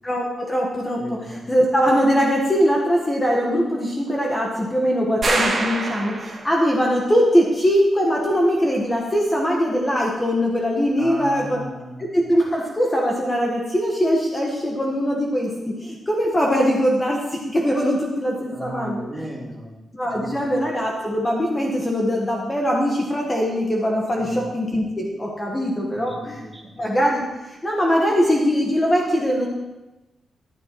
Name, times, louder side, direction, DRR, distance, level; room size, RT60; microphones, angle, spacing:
voice 1, 0.0-11.6 12.0-19.3 19.9-26.4 26.8-29.5, equal, 20° left, -1 dB, 1.4 m, -21 dB
voice 2, 1.0-1.4 11.0-12.1 18.5-19.7 20.1-20.6 24.2-24.4 25.9-26.8, equal, 10° right, -2 dB, 2.2 m, -35 dB
sound 1, 5.2-6.7, right 3 dB, 40° right, 2.0 m, -24 dB
13.5 x 11.0 x 3.1 m, 1.1 s
wide cardioid pair, 120°, 0 cm